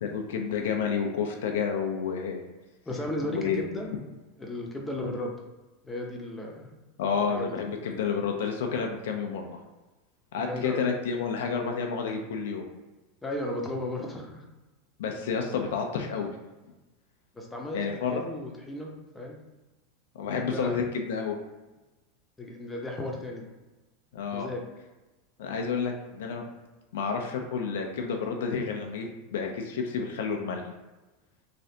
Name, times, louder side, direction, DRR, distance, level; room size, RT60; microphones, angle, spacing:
voice 1, 0.0-2.4 3.3-3.6 7.0-9.6 10.3-12.7 15.0-16.3 17.7-18.2 20.1-21.4 24.1-24.5 25.4-26.4 26.9-30.6, left 6 dB, 75° left, 3 dB, 0.5 m, -30 dB
voice 2, 2.9-3.9 4.4-5.4 5.8-6.8 7.2-7.6 10.4-10.8 13.2-14.5 17.3-19.4 20.5-20.8 22.4-23.5 24.3-24.6, left 1 dB, 10° left, 0 dB, 0.7 m, -35 dB
3.2 x 2.3 x 2.8 m, 1.1 s
hypercardioid pair, 100°, 0 cm